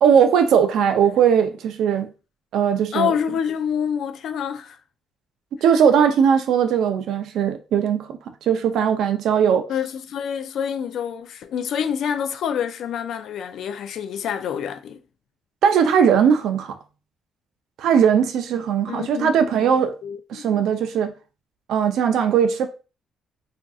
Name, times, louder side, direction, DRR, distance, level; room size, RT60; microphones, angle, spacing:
voice 1, 0.0-2.1 2.5-3.2 5.6-9.7 15.6-16.8 17.8-19.9 20.3-21.1 21.7-22.7, right 7 dB, 65° right, 0.4 m, -19 dB
voice 2, 2.9-4.8 9.7-15.0 18.9-19.7 20.0-20.5, left 8 dB, 55° left, 0.3 m, -27 dB
3.6 x 2.5 x 2.3 m
cardioid pair, 170°, 0 cm